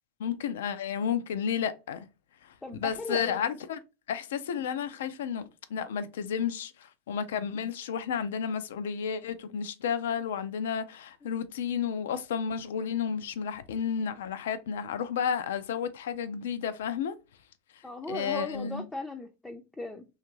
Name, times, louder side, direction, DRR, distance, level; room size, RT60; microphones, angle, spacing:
voice 1, 0.2-2.1 2.8-3.8 4.1-6.7 7.1-17.2 18.1-18.8, left 7 dB, 75° left, 0.3 m, -32 dB
voice 2, 2.6-3.4 17.8-20.1, left 2 dB, 10° left, 0.4 m, -38 dB
2.5 x 2.4 x 3.0 m
hypercardioid pair, 95°, 0 cm